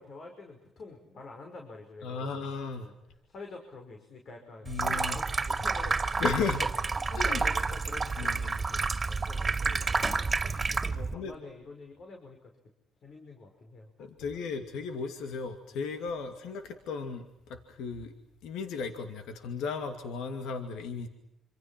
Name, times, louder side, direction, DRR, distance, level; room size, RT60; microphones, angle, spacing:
voice 1, 0.0-2.5 2.8-3.0 3.3-6.2 7.1-10.3 10.7-12.5 13.0-14.1, left 3 dB, 60° left, 3 dB, 5.8 m, -47 dB
voice 2, 2.0-2.9 4.7-5.2 6.2-6.7 7.2-7.4 8.2-8.6 10.9-11.3 14.0-18.1 18.4-21.1, left 5 dB, 90° left, 6 dB, 2.5 m, -35 dB
Water tap faucet / Sink (filling or washing), 4.7-11.1, right 4 dB, 30° right, 2.4 m, -29 dB
27.5 x 27.0 x 6.1 m, 0.83 s
cardioid pair, 90°, 0 cm